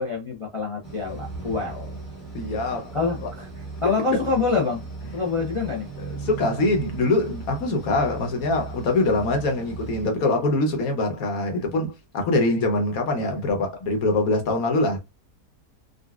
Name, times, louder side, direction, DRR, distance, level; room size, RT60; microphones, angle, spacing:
voice 1, 0.0-2.0 2.9-3.5 3.8-4.8 5.1-5.9, left 4 dB, 45° left, 0.4 m, -26 dB
sound 1, 0.8-10.1, right 3 dB, 20° left, 1.0 m, -38 dB
voice 2, 2.3-2.9 3.2-3.3 6.2-15.0, left 2 dB, 65° left, 1.2 m, -23 dB
sound 2, 5.0-9.9, right 5 dB, 55° right, 0.8 m, -41 dB
3.8 x 2.3 x 2.3 m
omnidirectional pair, 1.8 m